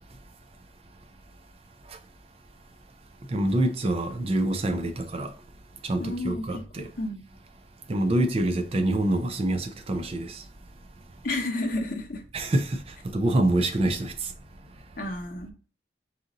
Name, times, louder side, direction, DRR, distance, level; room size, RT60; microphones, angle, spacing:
voice 1, 3.3-5.3 5.8-6.9 7.9-10.4 12.3-12.8 13.1-14.3, right 1 dB, 35° right, 0.4 m, -26 dB
voice 2, 6.0-6.6 7.0-7.3 11.2-12.2 15.0-15.5, left 2 dB, 50° left, 0.9 m, -31 dB
4.1 x 2.5 x 3.7 m
head